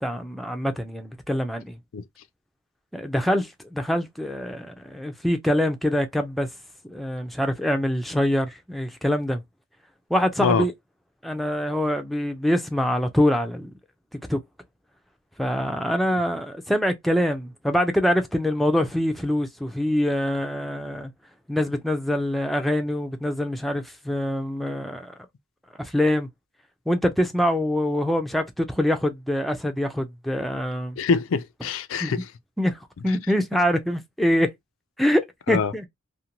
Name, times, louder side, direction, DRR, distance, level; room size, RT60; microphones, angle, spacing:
voice 1, 0.0-1.8 2.9-6.5 6.8-9.4 10.1-10.7 11.2-13.7 14.3-14.4 15.4-21.1 21.5-25.1 25.8-26.3 26.9-31.0 32.0-32.1 32.6-34.5 35.0-35.9, equal, ahead, 0.4 m, -24 dB
voice 2, 31.0-32.3 35.5-35.7, left 5 dB, 85° left, 0.4 m, -24 dB
2.6 x 2.1 x 2.8 m
head